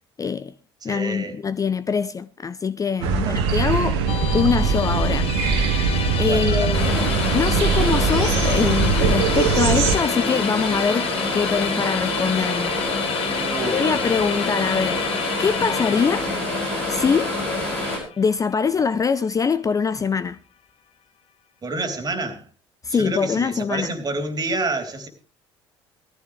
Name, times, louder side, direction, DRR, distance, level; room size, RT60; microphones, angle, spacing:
voice 1, 0.2-0.5 0.8-4.0 4.3-5.3 6.2-12.8 13.7-15.0 15.4-16.3 16.9-17.3 18.2-20.4 22.8-23.9, left 5 dB, 25° left, 0.6 m, -23 dB
voice 2, 0.8-1.4 3.1-3.4 6.2-6.8 13.5-14.1 21.6-22.4 22.9-25.1, right 2 dB, 30° right, 3.3 m, -28 dB
sound 1, 3.0-10.0, right 5 dB, 65° right, 1.6 m, -21 dB
Musical instrument, 4.1-19.2, left 10 dB, 45° left, 1.1 m, -31 dB
sound 2, 6.7-18.0, left 1 dB, 80° left, 6.2 m, -26 dB
19.5 x 14.5 x 3.2 m
figure-of-eight pair, 60°, 14 cm